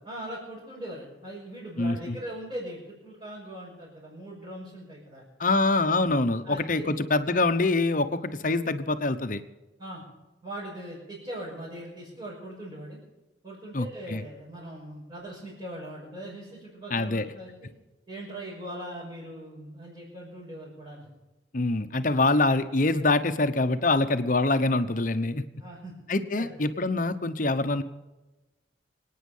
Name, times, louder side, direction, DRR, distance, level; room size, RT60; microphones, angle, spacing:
voice 1, 0.0-5.2 6.4-7.0 8.1-8.3 9.8-10.0 10.4-13.0 13.4-17.7 18.1-21.1 25.6-25.9 26.4-26.5, right 1 dB, 25° right, -7 dB, 6.0 m, -40 dB
voice 2, 1.8-2.2 5.4-9.4 13.7-14.2 16.9-17.3 21.5-25.4 26.1-27.8, left 2 dB, 45° left, 9 dB, 0.9 m, -25 dB
25.5 x 9.4 x 5.5 m, 1.1 s
head